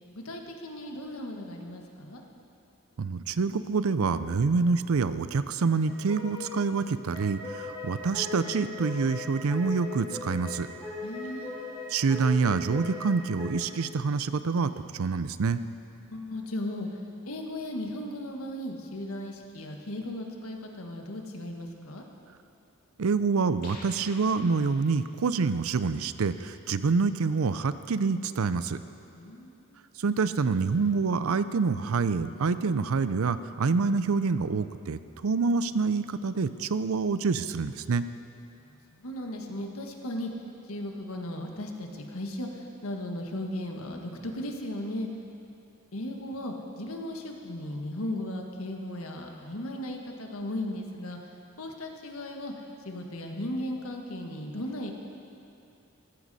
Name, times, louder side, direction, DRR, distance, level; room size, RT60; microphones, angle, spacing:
voice 1, 0.1-2.2 11.0-11.6 16.0-16.9 17.2-22.0 29.1-29.8 38.9-40.3 40.7-45.1 45.9-51.2 51.6-52.5 52.8-54.9, left 1 dB, 80° left, 2 dB, 1.5 m, -36 dB
voice 2, 3.0-10.7 11.9-15.6 23.0-28.8 30.0-38.0, right 4 dB, 80° right, 13 dB, 0.5 m, -27 dB
sound 1, 5.9-13.5, left 3 dB, 20° left, 2.6 m, -39 dB
sound 2, 23.6-25.2, left 2 dB, 45° left, 2.1 m, -48 dB
15.0 x 14.5 x 4.2 m, 2.7 s
head